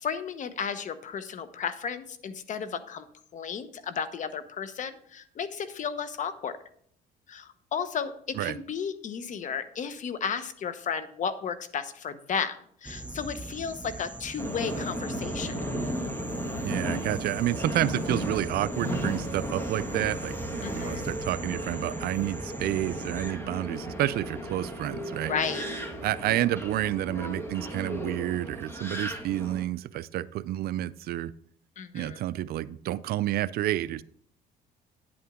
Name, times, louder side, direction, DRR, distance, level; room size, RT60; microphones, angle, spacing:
voice 1, 0.0-3.1 3.3-6.5 7.3-15.5 20.6-21.1 25.3-25.7 31.8-32.2, left 7 dB, 50° left, 12 dB, 1.0 m, -33 dB
sound 1, 12.8-23.3, right 2 dB, 10° right, 0.7 m, -41 dB
Subway metro underground, 14.4-29.6, equal, 15° left, 1.9 m, -35 dB
voice 2, 16.6-25.3 26.0-31.3 31.9-34.0, right 14 dB, 65° right, 18 dB, 0.4 m, -30 dB
10.0 x 8.6 x 3.7 m, 0.63 s
cardioid pair, 110°, 17 cm